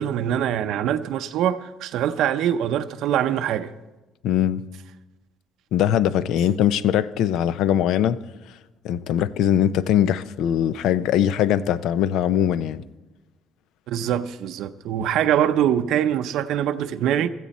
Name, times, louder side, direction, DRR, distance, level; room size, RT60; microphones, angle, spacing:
voice 1, 0.0-3.7 13.9-17.3, right 10 dB, 70° right, 0.5 m, -23 dB
voice 2, 4.2-4.6 5.7-8.2 8.8-12.8, left 10 dB, 75° left, 0.5 m, -21 dB
16.0 x 14.0 x 4.2 m
cardioid pair, 145°, 0 cm